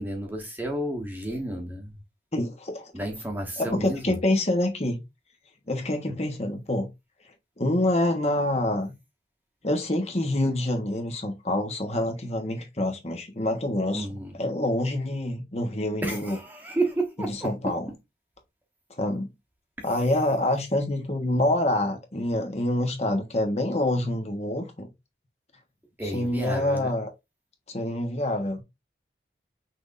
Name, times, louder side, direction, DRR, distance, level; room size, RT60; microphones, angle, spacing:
voice 1, 0.0-1.9 2.9-4.2 13.9-14.3 16.0-17.7 26.0-26.9, right 1 dB, 10° right, 1.1 m, -31 dB
voice 2, 2.3-2.9 3.6-5.0 5.7-6.9 7.6-8.9 9.6-14.1 14.4-16.4 17.2-17.9 19.0-19.3 19.8-24.9 26.0-27.1 27.7-28.6, left 1 dB, 35° left, 1.1 m, -26 dB
6.0 x 3.5 x 2.6 m
head